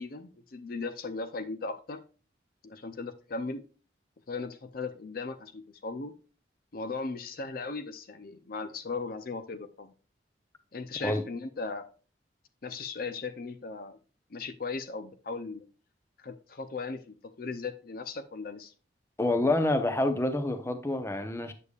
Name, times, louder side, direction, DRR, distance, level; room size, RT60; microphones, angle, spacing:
voice 1, 0.0-2.0 2.6-3.6 4.3-6.1 6.7-9.9 10.7-11.9 12.6-14.0 14.3-15.6 16.2-18.7, left 4 dB, 50° left, 0.5 m, -37 dB
voice 2, 19.2-21.5, left 2 dB, 15° left, 0.7 m, -27 dB
8.2 x 6.8 x 2.4 m
head